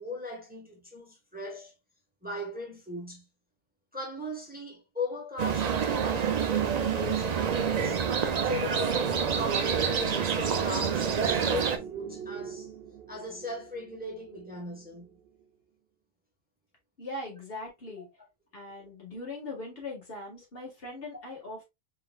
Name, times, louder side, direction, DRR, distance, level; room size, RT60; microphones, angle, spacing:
voice 1, 0.0-1.7 2.2-3.3 3.9-8.1 8.4-12.7 13.1-15.2 18.0-18.1, left 2 dB, 10° right, 1.0 m, -39 dB
sound 1, 5.4-11.8, right 7 dB, 50° right, 0.6 m, -27 dB
sound 2, 7.2-15.4, right 8 dB, 70° right, 0.9 m, -45 dB
voice 2, 17.0-18.1 18.5-21.6, left 2 dB, 65° left, 1.8 m, -40 dB
3.9 x 3.8 x 2.2 m
omnidirectional pair, 1.1 m